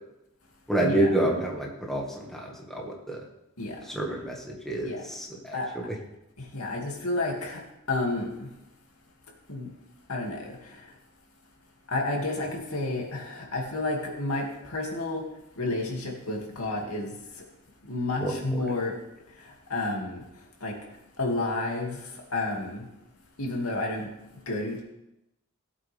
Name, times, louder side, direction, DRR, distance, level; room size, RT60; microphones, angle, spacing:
voice 1, 0.7-3.2 3.9-5.6 5.9-6.0 18.2-18.3, right 1 dB, ahead, -2 dB, 2.0 m, -28 dB
voice 2, 4.7-5.0 5.5-5.7 6.5-7.6 7.9-8.5 9.5-9.7 10.1-10.6 11.9-15.2 15.6-17.1 17.8-18.9 19.7-20.2 20.6-20.7 21.2-22.0 22.3-22.8 23.4-24.1 24.5-24.8, left 2 dB, 75° left, -1 dB, 2.6 m, -30 dB
17.0 x 8.2 x 3.6 m, 0.89 s
head